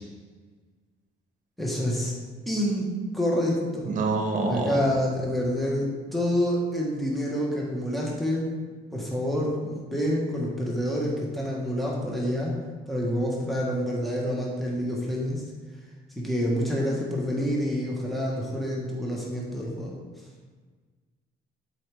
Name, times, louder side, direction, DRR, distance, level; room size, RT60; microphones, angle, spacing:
voice 1, 1.6-2.1 2.5-3.9 4.5-8.5 8.9-12.5 12.9-15.4 16.2-19.9, equal, ahead, -3 dB, 1.3 m, -27 dB
voice 2, 3.8-4.8, right 3 dB, 50° right, 2 dB, 1.2 m, -26 dB
7.8 x 4.6 x 3.5 m, 1.4 s
cardioid pair, 110°, 17 cm